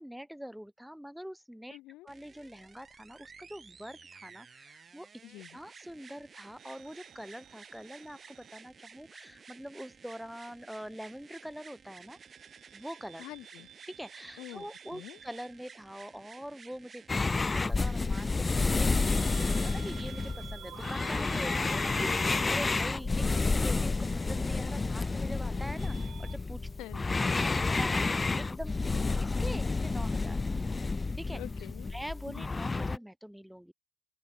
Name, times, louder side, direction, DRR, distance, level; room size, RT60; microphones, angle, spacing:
voice 1, 0.0-1.8 2.0-5.1 5.5-12.2 12.7-13.2 13.8-26.7 27.4-28.9 29.2-30.4 31.1-31.4 31.9-33.7, equal, ahead, 4.3 m, -44 dB
voice 2, 1.7-2.1 5.2-5.6 13.2-13.7 14.4-15.2 26.8-27.0 28.8-29.1 31.3-31.9 32.3-32.5, left 17 dB, 65° left, 2.8 m, -46 dB
sound 1, 2.1-20.3 21.3-21.4, right 6 dB, 35° right, 3.3 m, -54 dB
sound 2, 6.6-9.4 9.7-10.9 12.1-26.4, right 12 dB, 60° right, 3.6 m, -53 dB
sound 3, 17.1-33.0, left 3 dB, 25° left, 0.7 m, -30 dB
open air
hypercardioid pair, 50°, 0 cm